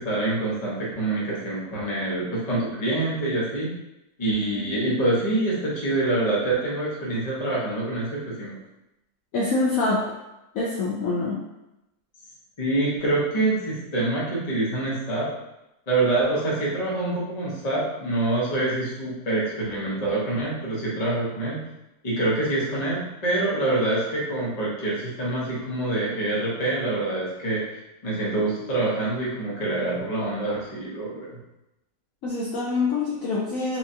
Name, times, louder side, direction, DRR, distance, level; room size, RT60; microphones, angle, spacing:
voice 1, 0.0-3.7 4.2-8.6 12.6-15.3 15.9-21.6 22.0-31.4, right 2 dB, 30° left, -6 dB, 0.8 m, -26 dB
voice 2, 9.3-10.0 10.5-11.4 32.2-33.8, left 3 dB, 65° left, -5 dB, 0.9 m, -25 dB
4.6 x 2.4 x 2.7 m, 0.93 s
omnidirectional pair, 1.8 m